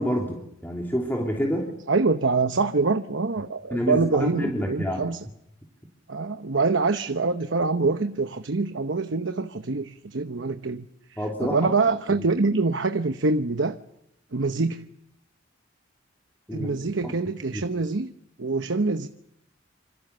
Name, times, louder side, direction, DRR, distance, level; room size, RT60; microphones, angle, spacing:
voice 1, 0.0-1.7 3.7-5.0 11.2-11.7 16.5-16.7 17.0-17.1 17.5-17.6, equal, 10° left, 3.0 m, -28 dB
voice 2, 1.9-5.2 6.1-10.9 11.2-13.8 14.3-14.9 16.5-18.1 18.4-19.1, right 3 dB, 75° right, 1.0 m, -25 dB
26.5 x 26.5 x 6.8 m
head